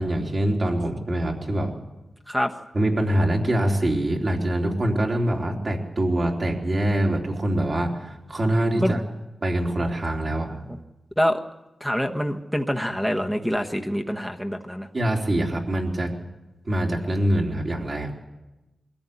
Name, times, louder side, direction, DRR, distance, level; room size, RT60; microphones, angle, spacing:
voice 1, 0.0-1.7 2.7-9.0 9.4-10.6 14.9-16.1 16.6-18.1, right 1 dB, 45° right, 0 dB, 3.4 m, -24 dB
voice 2, 11.8-14.9, equal, ahead, 4 dB, 1.2 m, -25 dB
22.5 x 14.0 x 9.6 m, 1.0 s
wide cardioid pair, 95°, 0 cm